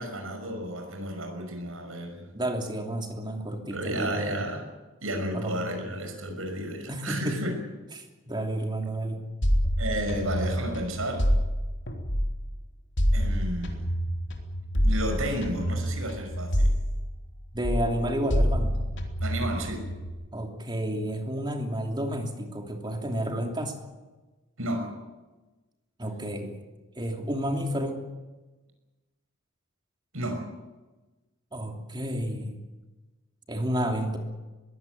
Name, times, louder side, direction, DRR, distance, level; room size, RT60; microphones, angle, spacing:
voice 1, 0.0-2.3 3.7-4.6 5.0-7.6 9.8-11.3 13.1-13.9 14.8-16.7 19.2-19.9 24.6-24.9 30.1-30.4, right 1 dB, 85° right, 4 dB, 5.9 m, -32 dB
voice 2, 2.3-4.4 5.3-5.7 6.9-7.4 8.0-9.2 17.5-18.8 20.3-23.7 26.0-26.6 27.0-28.0 31.5-32.6 33.5-34.2, equal, 20° right, 3 dB, 3.0 m, -31 dB
sound 1, 9.4-12.5 13.0-17.4 17.6-20.1, equal, 55° left, 3.3 m, -27 dB
22.0 x 16.5 x 9.5 m, 1.2 s
head